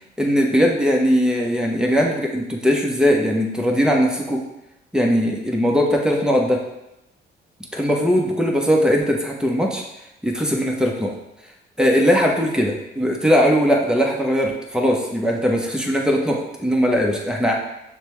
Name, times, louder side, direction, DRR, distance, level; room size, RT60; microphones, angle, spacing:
voice 1, 0.2-4.4 4.9-6.6 7.7-9.8 10.2-11.2 11.8-17.5, equal, 5° right, -1 dB, 0.8 m, -19 dB
6.5 x 2.2 x 3.1 m, 0.90 s
cardioid pair, 90°, 20 cm